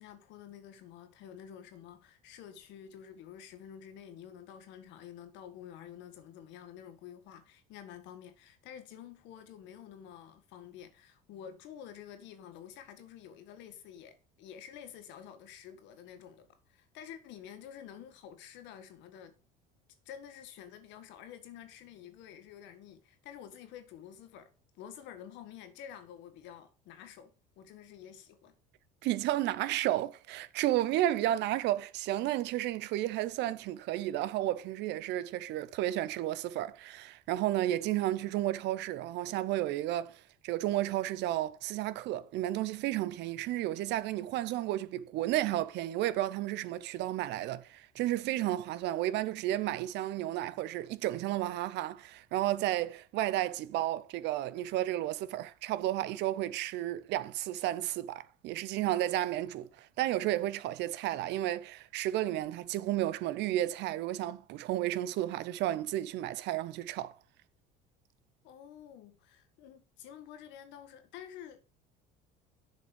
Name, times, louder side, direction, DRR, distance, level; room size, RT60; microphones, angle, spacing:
voice 1, 0.0-19.3 20.0-28.5 68.4-71.6, left 9 dB, 70° left, 1.6 m, -49 dB
voice 2, 29.0-67.1, right 14 dB, 65° right, 0.7 m, -32 dB
7.4 x 5.3 x 6.9 m
supercardioid pair, 90°, 20 cm